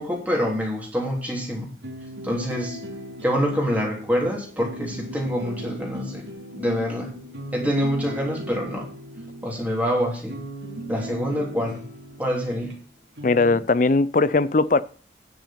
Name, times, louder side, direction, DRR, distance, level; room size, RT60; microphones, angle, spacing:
voice 1, 0.0-1.7 2.2-2.8 3.2-6.2 6.5-7.1 7.5-8.9 9.4-10.4 10.9-11.8 12.2-12.8, equal, 10° right, 3.2 m, -26 dB
sound 1, 1.8-12.8 13.2-13.6, equal, 80° right, 2.5 m, -38 dB
voice 2, 13.2-14.8, left 3 dB, 45° left, 0.5 m, -19 dB
10.0 x 6.2 x 5.9 m
head